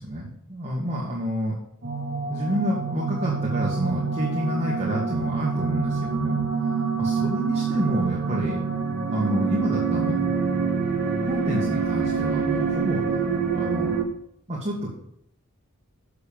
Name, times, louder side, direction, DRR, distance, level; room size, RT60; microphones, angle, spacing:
voice 1, 0.0-1.6 2.3-8.6 8.9-10.2 11.3-13.0 13.5-13.9 14.5-15.0, equal, 30° right, -5 dB, 1.9 m, -29 dB
sound 1, 1.8-14.0, right 5 dB, 50° right, 1.6 m, -26 dB
7.0 x 6.9 x 7.0 m, 0.72 s
head